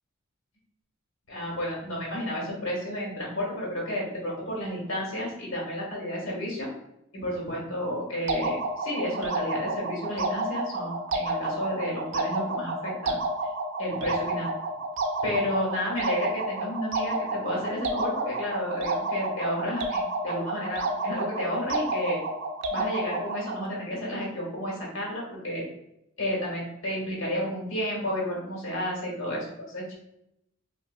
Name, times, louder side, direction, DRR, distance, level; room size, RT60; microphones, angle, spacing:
voice 1, 1.3-6.7 7.1-13.2 13.8-14.5 15.2-22.2 22.7-25.6 26.2-29.9, equal, 75° left, -3 dB, 1.4 m, -31 dB
sound 1, 8.3-23.7, right 2 dB, 65° right, 0.4 m, -31 dB
5.3 x 2.4 x 2.2 m, 0.82 s
head